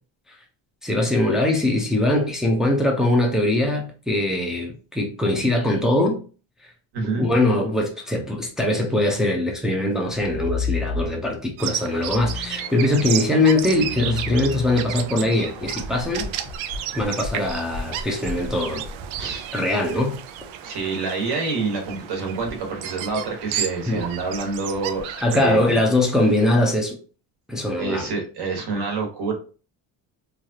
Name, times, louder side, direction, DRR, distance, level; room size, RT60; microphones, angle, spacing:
voice 1, 0.8-6.2 7.1-16.3 16.9-18.8 19.5-20.2 23.9-24.0 25.2-27.0 27.5-28.1, left 1 dB, ahead, 0.4 m, -22 dB
voice 2, 6.9-7.3 19.2-19.5 20.6-25.8 27.8-29.3, right 4 dB, 60° right, 1.4 m, -27 dB
sound 1, 10.1-11.5 12.0-18.9, left 5 dB, 40° left, 0.7 m, -33 dB
Bird vocalization bird call bird song, 11.6-26.7, right 10 dB, 90° right, 0.6 m, -33 dB
3.2 x 2.3 x 2.7 m
cardioid pair, 155°, 45 cm